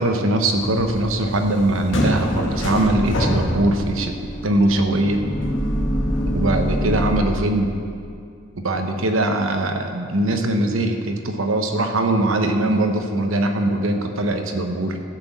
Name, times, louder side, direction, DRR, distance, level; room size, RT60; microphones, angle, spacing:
voice 1, 0.0-4.1 4.4-5.2 6.3-7.7 8.6-15.0, right 1 dB, 70° right, 5 dB, 1.1 m, -21 dB
sound 1, 0.5-7.2, equal, 65° left, 1.8 m, -25 dB
14.0 x 6.0 x 7.3 m, 2.3 s
head